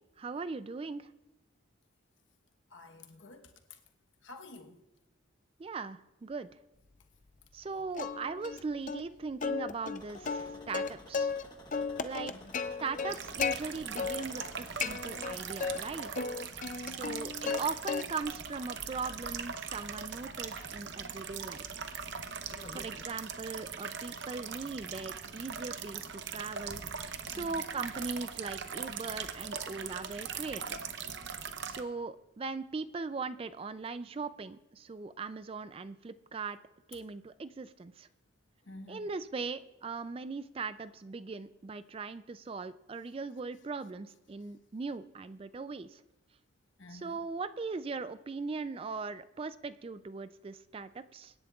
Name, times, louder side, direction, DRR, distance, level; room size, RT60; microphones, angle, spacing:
voice 1, 0.2-1.1 5.6-6.5 7.5-11.3 12.0-12.3 12.8-16.1 16.9-21.8 22.7-26.8 27.3-30.8 31.7-36.6 36.9-38.1 38.9-46.0 46.9-51.3, right 4 dB, 30° right, 0.3 m, -39 dB
voice 2, 2.7-3.8 4.2-4.8 12.3-12.6 16.9-17.3 26.2-26.4 27.3-27.6 36.9-37.0 38.6-39.1 46.8-47.2, left 2 dB, 70° left, 1.1 m, -51 dB
Plucked string instrument, 8.0-8.6 8.9-9.0 9.4-11.4 11.7-13.6 14.0-14.5 14.8-15.8 16.1-17.6 17.9-18.4 18.8-23.0, left 5 dB, 40° left, 0.5 m, -35 dB
sound 1, 10.0-16.0, left 1 dB, 20° left, 1.2 m, -54 dB
sound 2, 13.1-31.8, right 6 dB, 60° right, 0.8 m, -41 dB
24.5 x 11.0 x 2.4 m
head